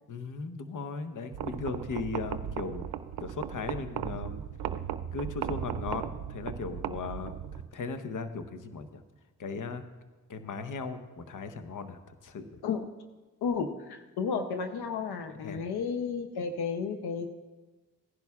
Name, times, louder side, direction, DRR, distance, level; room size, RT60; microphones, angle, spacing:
voice 1, 0.1-2.9 3.2-4.4 5.1-9.0 9.4-9.8 10.3-12.6 15.4-15.6, left 4 dB, 55° left, 10 dB, 0.9 m, -37 dB
sound 1, 1.3-7.7, right 9 dB, 75° right, 0.6 m, -37 dB
voice 2, 13.4-17.3, left 5 dB, 85° left, 7 dB, 0.7 m, -32 dB
16.5 x 10.5 x 2.4 m, 1.2 s
cardioid pair, 50°, 38 cm